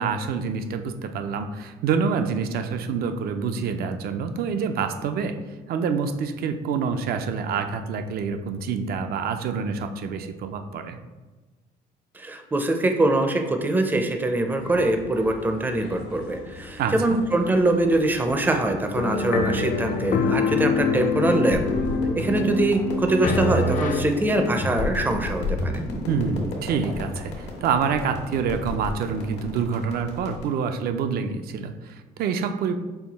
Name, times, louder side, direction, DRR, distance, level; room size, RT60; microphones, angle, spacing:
voice 1, 0.0-5.4 5.7-11.0 16.8-17.2 26.1-32.8, right 6 dB, 65° right, 8 dB, 0.5 m, -27 dB
voice 2, 12.2-21.6 22.2-25.8, right 2 dB, 10° right, 5 dB, 0.4 m, -23 dB
sound 1, 14.6-22.0, left 3 dB, 70° left, 0.8 m, -43 dB
sound 2, 18.9-24.0, left 4 dB, 50° left, 0.4 m, -25 dB
sound 3, 21.5-30.4, left 2 dB, 85° left, 1.2 m, -32 dB
5.6 x 2.3 x 4.0 m, 1.2 s
cardioid pair, 110°, 17 cm